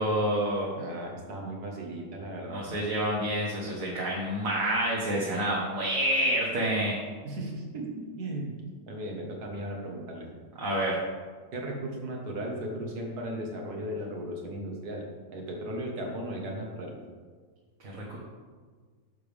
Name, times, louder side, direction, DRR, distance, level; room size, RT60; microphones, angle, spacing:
voice 1, 0.0-0.7 2.5-7.0 10.6-11.0 17.9-18.2, right 1 dB, 55° right, -5 dB, 1.7 m, -28 dB
voice 2, 0.8-2.6 7.2-8.5 8.9-10.3 11.5-15.1 15.3-17.0, right 1 dB, 75° right, 0 dB, 2.0 m, -36 dB
11.0 x 6.9 x 3.5 m, 1.5 s
omnidirectional pair, 1.7 m